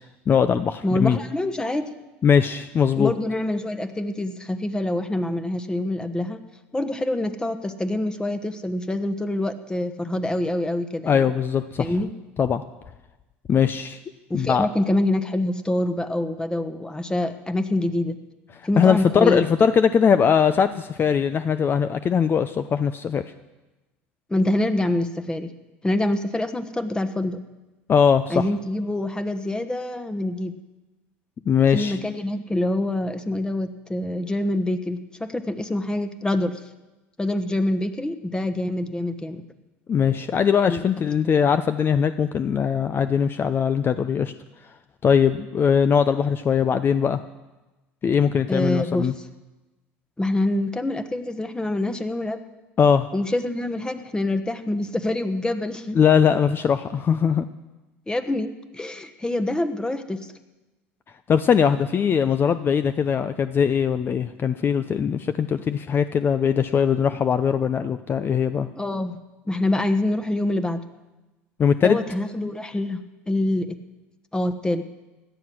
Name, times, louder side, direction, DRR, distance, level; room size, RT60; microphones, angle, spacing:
voice 1, 0.3-1.2 2.2-3.1 11.1-11.9 12.4-12.6 13.5-14.0 14.3-14.7 18.8-23.2 27.9-28.4 31.5-32.0 39.9-44.3 45.0-47.2 48.0-49.1 52.8-53.1 55.9-57.4 61.3-68.7 71.6-72.0, left 7 dB, 35° left, 11 dB, 0.7 m, -20 dB
voice 2, 0.8-1.9 3.0-6.4 6.7-11.3 11.8-12.1 14.3-18.2 18.6-19.4 24.3-25.5 25.8-27.4 28.3-30.6 31.7-36.6 37.2-39.4 40.6-40.8 48.5-49.1 50.2-52.4 53.1-56.0 58.1-60.2 68.8-69.2 69.5-70.8 71.8-73.0 73.3-73.8 74.3-74.8, left 1 dB, 15° left, 9 dB, 1.2 m, -25 dB
17.0 x 11.0 x 6.2 m, 1.1 s
supercardioid pair, 85°, 6 cm